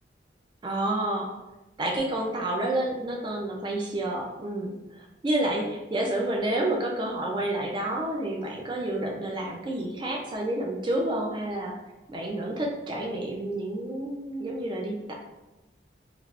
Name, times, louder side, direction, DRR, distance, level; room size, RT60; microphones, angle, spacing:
voice 1, 0.6-1.3 1.8-11.8 12.1-15.1, right 1 dB, 25° right, 0 dB, 0.3 m, -29 dB
3.3 x 2.4 x 2.3 m, 1.0 s
head